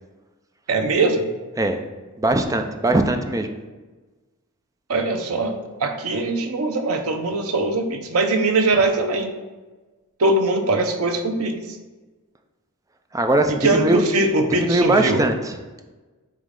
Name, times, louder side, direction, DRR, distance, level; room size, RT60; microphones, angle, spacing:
voice 1, 0.7-1.3 4.9-9.3 10.2-11.8 13.6-15.2, right 2 dB, 85° right, 5 dB, 0.7 m, -21 dB
voice 2, 2.2-3.5 13.1-14.0 14.5-15.6, right 2 dB, 15° right, 6 dB, 0.4 m, -20 dB
8.5 x 3.1 x 3.7 m, 1.3 s
head